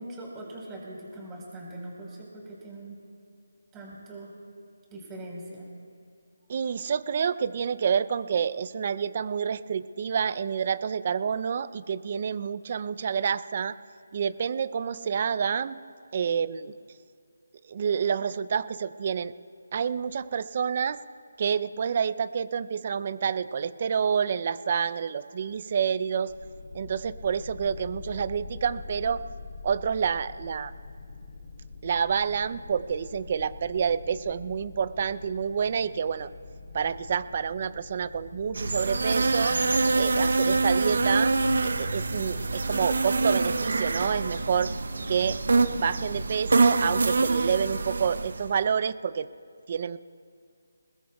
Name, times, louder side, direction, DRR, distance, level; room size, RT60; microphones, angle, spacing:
voice 1, 0.0-3.0 3.7-4.3 4.9-5.7, right 1 dB, 15° right, -3 dB, 4.5 m, -41 dB
voice 2, 6.5-13.8 14.1-15.8 16.1-16.7 17.7-19.3 19.7-21.0 21.4-26.3 26.7-29.2 29.6-30.7 31.8-36.3 36.7-39.6 40.0-41.3 41.6-44.7 45.1-49.3 49.7-50.0, right 7 dB, 40° right, 16 dB, 0.5 m, -28 dB
sound 1, 26.3-45.4, left 3 dB, 55° left, 3.7 m, -44 dB
sound 2, 38.5-48.5, right 3 dB, 65° right, 0.8 m, -25 dB
21.5 x 21.0 x 2.4 m, 2.4 s
figure-of-eight pair, 165°, 0 cm